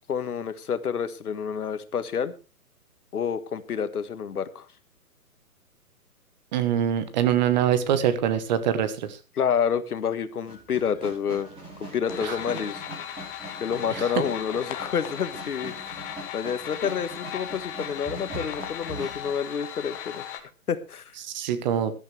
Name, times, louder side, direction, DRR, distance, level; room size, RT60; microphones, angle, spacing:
voice 1, 0.1-2.3 3.1-4.7 9.3-11.5 11.9-12.8 13.6-16.0 16.3-20.2 20.7-21.1, left 7 dB, 75° left, 12 dB, 1.6 m, -28 dB
voice 2, 6.5-9.2 12.2-12.4 13.9-14.0 21.2-21.9, right 9 dB, 30° right, 12 dB, 1.2 m, -24 dB
sound 1, 10.5-19.3, right 2 dB, 10° right, 5.9 m, -42 dB
sound 2, 12.1-20.4, left 10 dB, 20° left, 1.3 m, -37 dB
16.5 x 12.0 x 3.3 m, 0.30 s
hypercardioid pair, 150°, 46 cm